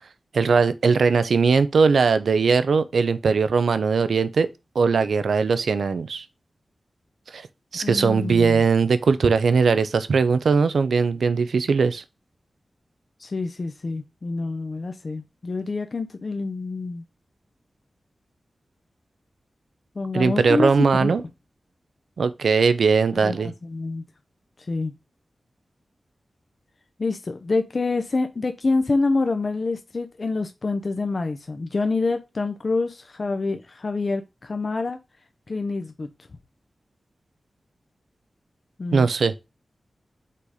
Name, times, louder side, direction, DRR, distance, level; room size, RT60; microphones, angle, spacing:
voice 1, 0.3-4.5 4.7-6.2 7.3-7.5 7.7-12.0 20.1-21.2 22.2-23.5 38.9-39.3, right 5 dB, 85° right, 0.6 m, -20 dB
voice 2, 7.8-8.6 13.2-17.0 20.0-20.7 21.0-21.1 23.2-24.0 24.7-24.9 27.0-35.0 35.5-36.1 38.8-39.1, left 3 dB, 55° left, 0.7 m, -26 dB
5.6 x 4.0 x 4.9 m
cardioid pair, 60°, 0 cm